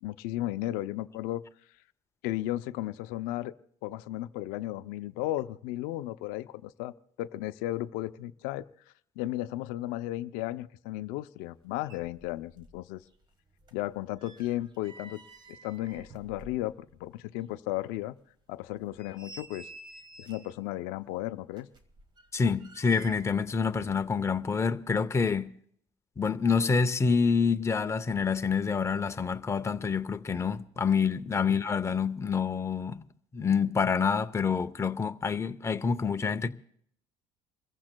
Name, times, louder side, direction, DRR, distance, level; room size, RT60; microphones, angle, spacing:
voice 1, 0.0-1.4 2.2-3.5 3.8-8.6 9.2-13.0 13.7-15.2 15.6-16.7 17.0-18.2 18.5-19.7 20.2-21.7, left 15 dB, 90° left, 0.5 m, -34 dB
sound 1, 11.5-11.6 11.8-12.8 13.1-17.0 17.4-17.5 18.0-18.1 18.7-20.6 21.5-23.5 23.8-23.9, right 2 dB, 30° right, 1.3 m, -51 dB
voice 2, 22.3-25.5 26.2-33.0 33.3-36.5, left 5 dB, 20° left, 0.6 m, -27 dB
28.5 x 15.0 x 2.2 m
cardioid pair, 110°, 15 cm